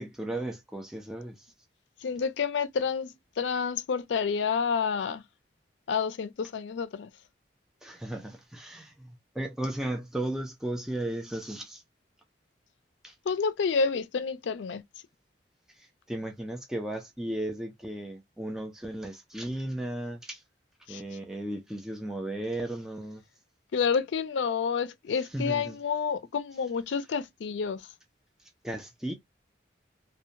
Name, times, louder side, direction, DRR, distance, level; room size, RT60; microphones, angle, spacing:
voice 1, 0.0-1.3 7.8-9.1 9.4-11.8 13.0-13.1 15.8-20.4 20.9-23.2 25.3-25.8 28.6-29.1, right 1 dB, 5° right, 0.3 m, -35 dB
voice 2, 2.0-5.2 5.9-7.1 13.3-14.8 20.9-21.0 23.7-27.8, left 6 dB, 80° left, 0.4 m, -29 dB
2.8 x 2.1 x 2.5 m
head